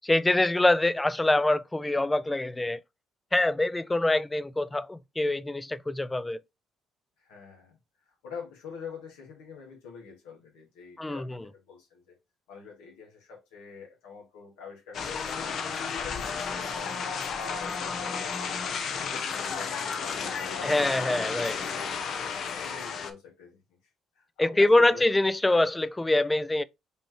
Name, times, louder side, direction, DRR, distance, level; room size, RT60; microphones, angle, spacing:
voice 1, 0.0-2.8 3.3-6.4 11.0-11.4 20.6-21.6 24.4-26.6, left 2 dB, 15° left, 0.4 m, -25 dB
voice 2, 7.2-12.2 12.5-15.6 15.9-17.0 17.4-18.6 18.9-21.1 21.6-23.6 24.1-25.1, left 5 dB, 85° left, 1.7 m, -46 dB
sound 1, 14.9-23.1, left 6 dB, 60° left, 0.7 m, -33 dB
5.3 x 3.2 x 2.9 m
supercardioid pair, 65°, 0 cm